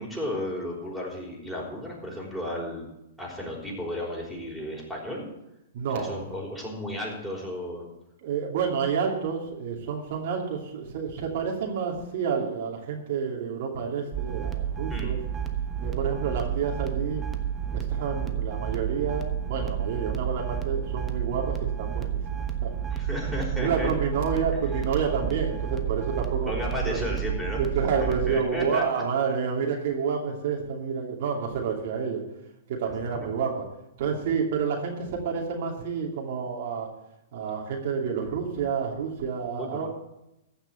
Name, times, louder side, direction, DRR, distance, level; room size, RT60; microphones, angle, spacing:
voice 1, 0.0-2.9 3.2-5.3 5.9-7.8 14.9-15.1 22.9-23.9 26.4-27.6 28.0-29.0 39.6-39.9, left 1 dB, ahead, -4 dB, 5.0 m, -33 dB
voice 2, 5.7-6.2 8.2-15.2 15.8-17.2 17.7-22.7 23.1-26.5 26.8-27.0 27.6-32.2 32.7-33.5 34.0-36.9 37.3-39.9, right 6 dB, 60° right, 0 dB, 2.8 m, -29 dB
sound 1, 14.1-28.4, right 9 dB, 15° right, 1.1 m, -30 dB
15.0 x 5.9 x 9.1 m, 0.87 s
hypercardioid pair, 135°, 0 cm